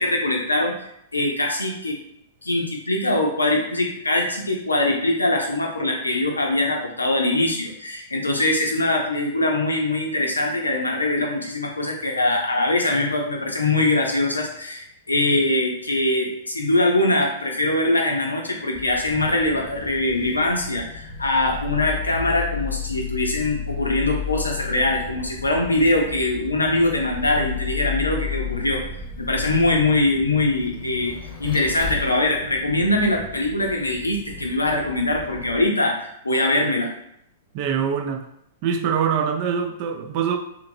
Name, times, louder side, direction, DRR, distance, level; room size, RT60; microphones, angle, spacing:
voice 1, 0.0-2.0 2.4-28.8 29.2-31.1 31.4-36.9, left 2 dB, 85° left, 1 dB, 0.6 m, -22 dB
Vehicle, 18.7-35.7, left 6 dB, 20° left, 0.9 m, -33 dB
voice 2, 37.5-38.2 38.6-40.4, right 7 dB, 45° right, 5 dB, 0.4 m, -23 dB
2.8 x 2.6 x 2.6 m, 0.75 s
figure-of-eight pair, 105°, 0 cm